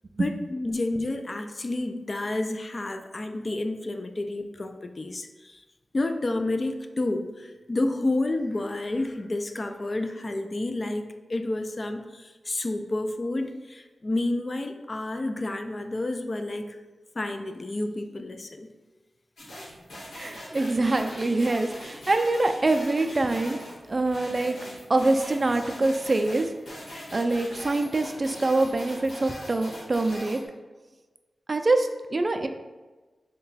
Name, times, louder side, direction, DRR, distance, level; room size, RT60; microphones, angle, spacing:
voice 1, 0.2-5.6 5.9-16.8 17.2-18.7, left 2 dB, 40° left, 7 dB, 0.3 m, -30 dB
sound 1, 19.4-30.4, equal, 80° left, 1.2 m, -41 dB
voice 2, 20.2-23.6 23.9-24.5 24.9-26.5 27.1-30.4 31.5-32.5, right 2 dB, 40° right, 6 dB, 0.3 m, -24 dB
3.8 x 2.2 x 4.0 m, 1.2 s
cardioid pair, 65°, 0 cm